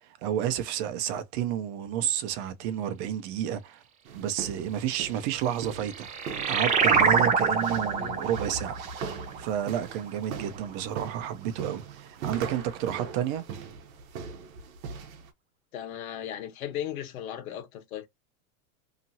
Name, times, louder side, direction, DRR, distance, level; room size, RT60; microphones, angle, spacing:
voice 1, 0.0-3.8 4.1-6.1 6.5-8.8 9.4-13.4, right 10 dB, 50° right, 0.7 m, -30 dB
sound 1, 4.1-15.3, right 6 dB, 80° right, 0.9 m, -40 dB
sound 2, 5.5-10.6, right 6 dB, 20° right, 0.4 m, -26 dB
voice 2, 7.9-8.2 15.7-18.1, left 10 dB, 85° left, 1.2 m, -36 dB
2.9 x 2.5 x 2.7 m
supercardioid pair, 135°, 41 cm